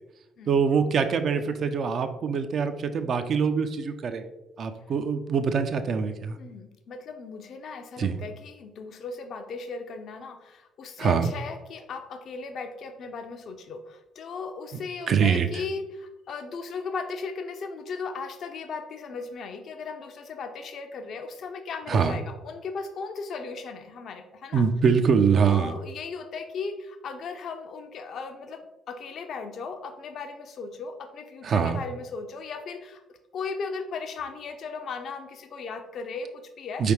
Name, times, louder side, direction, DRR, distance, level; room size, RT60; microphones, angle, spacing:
voice 1, 0.5-4.2 4.6-6.4 8.0-8.2 11.0-11.2 15.1-15.5 21.9-22.2 24.5-25.8 31.4-31.8 36.8-36.9, right 6 dB, 50° right, 8 dB, 0.4 m, -24 dB
voice 2, 6.4-24.6 25.4-33.0 33.3-36.8, left 4 dB, 50° left, 7 dB, 0.4 m, -37 dB
4.7 x 3.3 x 3.1 m, 0.99 s
figure-of-eight pair, 45°, 0 cm